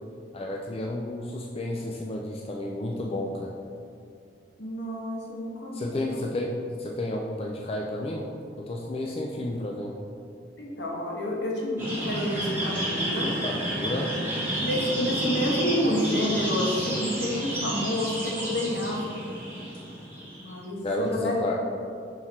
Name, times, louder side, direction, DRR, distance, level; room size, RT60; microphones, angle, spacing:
voice 1, 0.3-3.6 5.7-10.0 13.4-14.1 20.8-21.6, left 1 dB, 35° left, -1 dB, 0.4 m, -32 dB
voice 2, 4.6-5.9 10.6-13.3 14.6-19.2 20.4-21.4, equal, 75° left, -3 dB, 1.3 m, -29 dB
sound 1, 11.8-20.6, right 1 dB, 15° right, 1.5 m, -31 dB
5.7 x 4.7 x 4.3 m, 2.4 s
head